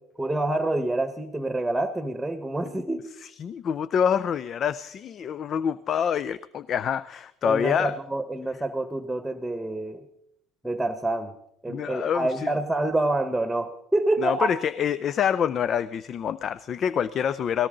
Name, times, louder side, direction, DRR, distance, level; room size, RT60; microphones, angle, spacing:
voice 1, 0.2-3.0 7.4-10.0 10.6-11.3 11.6-14.5, right 2 dB, 5° right, 9 dB, 1.4 m, -27 dB
voice 2, 3.2-7.9 11.7-12.5 14.2-17.7, left 8 dB, 45° left, 18 dB, 0.5 m, -26 dB
18.0 x 17.5 x 3.9 m, 0.77 s
supercardioid pair, 85°, 0 cm